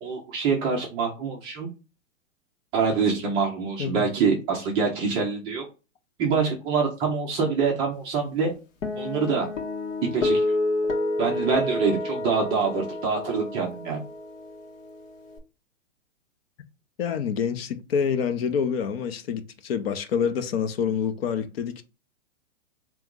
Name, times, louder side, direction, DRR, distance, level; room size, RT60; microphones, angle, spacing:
voice 1, 0.0-1.7 2.7-5.6 6.2-8.5 9.0-9.5 10.1-10.5 11.2-14.0, right 5 dB, 15° right, 0.4 m, -25 dB
Guitar, 8.8-15.4, left 2 dB, 75° left, 1.4 m, -29 dB
voice 2, 17.0-21.8, left 7 dB, 50° left, 0.7 m, -27 dB
3.5 x 3.0 x 3.6 m
hypercardioid pair, 140°, 39 cm